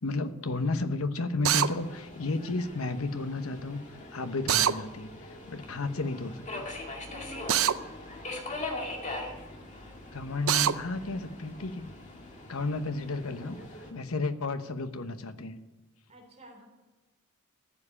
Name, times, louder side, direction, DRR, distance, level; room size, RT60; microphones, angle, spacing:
voice 1, 0.0-3.8 4.1-6.7 10.1-11.9 12.5-13.6 13.9-15.6, left 3 dB, 75° left, 10 dB, 1.0 m, -32 dB
Drill, 1.4-1.7 4.5-4.8 7.5-7.8 10.5-10.7, right 10 dB, 70° right, 0.5 m, -23 dB
Subway metro underground, 1.5-13.9, left 2 dB, 35° left, 2.1 m, -42 dB
voice 2, 7.0-7.7 16.1-16.6, equal, 30° right, 0 dB, 3.3 m, -48 dB
14.5 x 7.4 x 10.0 m, 1.1 s
head